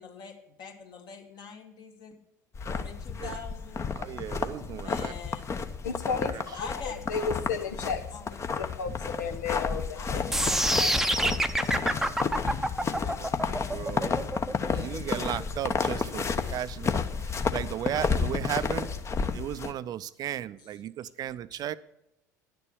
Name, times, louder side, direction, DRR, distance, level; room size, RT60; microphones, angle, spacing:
voice 1, 0.0-2.2 2.6-3.9 4.7-5.5 6.5-7.5 8.1-8.4 9.9-12.2 12.7-13.5 21.5-21.6, left 5 dB, 50° left, 3 dB, 2.0 m, -45 dB
sound 1, 2.5-19.7, left 5 dB, 30° left, 0.9 m, -31 dB
voice 2, 4.0-5.1 6.2-6.6 13.2-13.3 13.7-14.4 14.7-18.9 19.3-21.8, right 11 dB, 45° right, 16 dB, 0.5 m, -35 dB
voice 3, 5.8-8.0 8.6-10.5 10.7-10.9, left 5 dB, 75° left, 6 dB, 0.8 m, -33 dB
sound 2, 10.3-16.4, right 1 dB, 5° right, 0.7 m, -27 dB
10.5 x 6.9 x 7.1 m, 0.83 s
hypercardioid pair, 65°, 9 cm